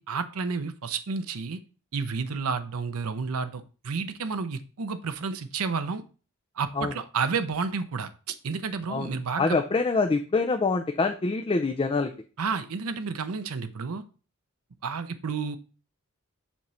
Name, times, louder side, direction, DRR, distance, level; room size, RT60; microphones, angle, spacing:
voice 1, 0.1-1.6 1.9-6.0 6.6-9.6 12.4-14.0 14.8-15.6, right 5 dB, 70° right, 10 dB, 0.6 m, -31 dB
voice 2, 9.4-12.1, left 3 dB, 25° left, 6 dB, 0.4 m, -25 dB
7.2 x 3.1 x 5.5 m, 0.36 s
head